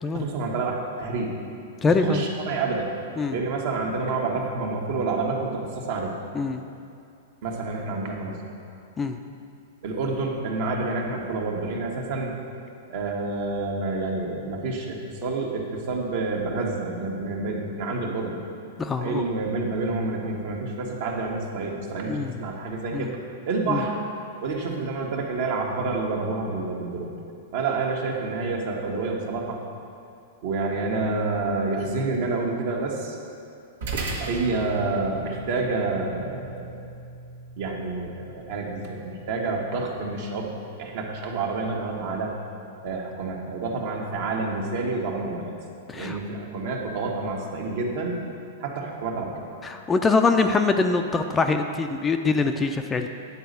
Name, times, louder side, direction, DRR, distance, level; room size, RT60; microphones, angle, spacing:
voice 1, 0.1-1.3 1.9-2.9 3.3-6.1 7.4-8.4 9.8-12.4 12.9-18.4 18.9-23.2 23.4-24.0 24.4-27.1 27.5-29.6 30.4-33.2 34.2-36.9 37.6-40.5 40.8-42.4 42.8-45.5 45.9-48.2 48.6-49.4, right 3 dB, 60° right, 0 dB, 1.4 m, -28 dB
voice 2, 1.8-2.2 3.2-3.4 6.3-6.6 9.0-9.2 18.8-19.2 22.1-22.4 22.9-23.1 23.7-23.8 45.9-46.2 49.6-53.1, left 4 dB, 15° left, 6 dB, 0.4 m, -23 dB
sound 1, 33.8-42.5, right 2 dB, 80° right, 1.4 m, -39 dB
9.7 x 4.1 x 6.7 m, 2.5 s
hypercardioid pair, 125°, 0 cm